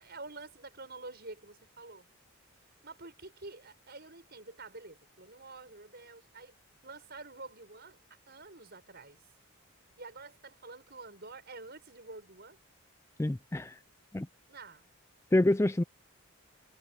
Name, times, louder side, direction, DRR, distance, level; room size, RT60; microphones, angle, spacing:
voice 1, 0.0-2.1 2.8-6.5 6.8-8.0 8.3-9.2 10.0-12.6 14.5-14.9, right 3 dB, 45° right, 7.2 m, -48 dB
voice 2, 13.2-13.8 14.1-14.3 15.3-15.8, left 1 dB, 10° left, 0.4 m, -27 dB
head